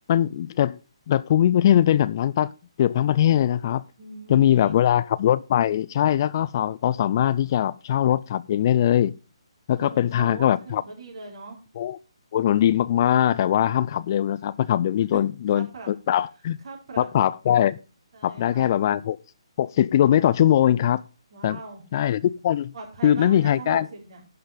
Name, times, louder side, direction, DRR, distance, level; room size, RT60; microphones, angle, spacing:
voice 1, 0.1-0.8 1.1-2.5 2.8-3.8 4.3-9.1 9.7-10.8 11.8-12.0 12.3-16.6 17.0-17.8 18.2-19.2 19.6-21.0 21.4-21.6 21.9-22.7 23.0-23.9, left 11 dB, 40° left, 0.4 m, -21 dB
voice 2, 4.0-4.9 9.8-11.6 15.1-15.2 15.5-15.9 16.6-17.1 18.1-18.7 21.3-21.8 22.7-24.2, right 3 dB, 55° right, 4.7 m, -40 dB
11.5 x 5.7 x 5.1 m
hypercardioid pair, 150°, 3 cm